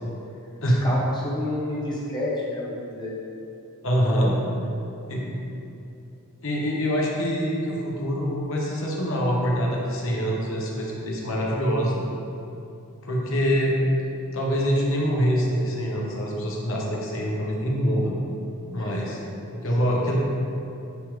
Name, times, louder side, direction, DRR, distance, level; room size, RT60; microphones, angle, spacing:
voice 1, 0.6-3.2 4.1-4.3 5.1-5.4 18.8-18.9 19.8-20.0, left 1 dB, 20° left, -5 dB, 1.0 m, -31 dB
voice 2, 3.8-4.4 5.1-5.2 6.4-12.0 13.0-13.8 14.3-18.1 18.7-19.2 19.5-20.2, equal, 60° left, -3 dB, 1.1 m, -25 dB
9.5 x 3.3 x 3.3 m, 2.8 s
head